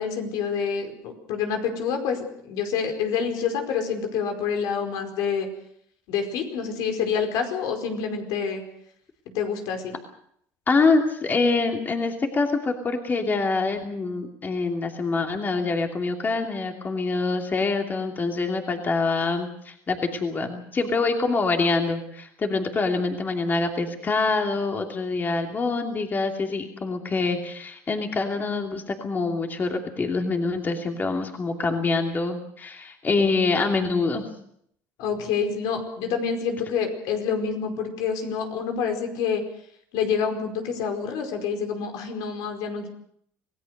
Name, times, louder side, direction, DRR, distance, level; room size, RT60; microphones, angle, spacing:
voice 1, 0.0-5.5 6.1-8.6 9.3-9.9 35.0-39.4 39.9-42.9, left 6 dB, 75° left, 5 dB, 4.9 m, -27 dB
voice 2, 10.7-34.3, left 3 dB, 30° left, 3 dB, 2.8 m, -25 dB
27.0 x 17.5 x 6.6 m, 0.68 s
cardioid pair, 115°, 7 cm